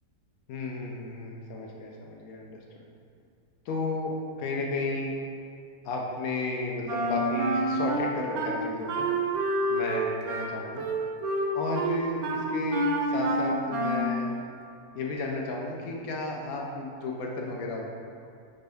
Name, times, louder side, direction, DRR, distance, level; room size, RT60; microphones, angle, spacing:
voice 1, 0.5-2.6 3.7-5.1 5.8-9.1 9.7-10.8 11.5-14.3 14.9-17.9, left 2 dB, 70° left, -1 dB, 0.9 m, -33 dB
Wind instrument woodwind instrument, 6.9-8.5 8.9-14.2, right 2 dB, 70° right, 1.0 m, -28 dB
5.3 x 2.6 x 3.4 m, 2.4 s
omnidirectional pair, 1.8 m